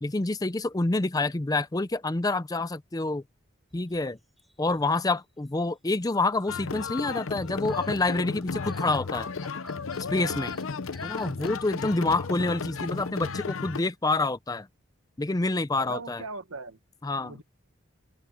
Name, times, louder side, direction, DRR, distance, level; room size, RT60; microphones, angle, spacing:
voice 1, 0.0-3.2 3.7-4.2 4.6-9.3 10.1-10.5 11.0-14.7 15.2-16.2 17.0-17.3, left 2 dB, 20° left, 0.5 m, -27 dB
sound 1, 3.7-11.9 12.2-12.5 13.2-13.3 13.7-14.0, equal, ahead, 4.8 m, -54 dB
sound 2, 6.5-13.8, left 4 dB, 75° left, 0.8 m, -34 dB
voice 2, 10.2-10.7 11.4-11.6 15.8-16.8 17.2-17.4, right 4 dB, 80° right, 1.5 m, -41 dB
open air
head